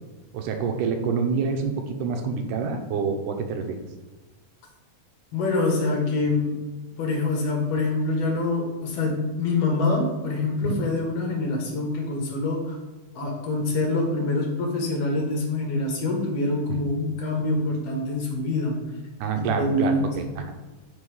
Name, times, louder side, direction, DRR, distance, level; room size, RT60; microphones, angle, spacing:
voice 1, 0.3-3.8 10.7-10.8 16.7-16.8 19.2-20.4, right 5 dB, 85° right, 5 dB, 2.2 m, -27 dB
voice 2, 5.3-6.5 7.0-12.8 13.2-18.8 19.4-20.1, left 2 dB, 60° left, 0 dB, 2.1 m, -25 dB
5.4 x 5.2 x 4.8 m, 1.2 s
omnidirectional pair, 3.7 m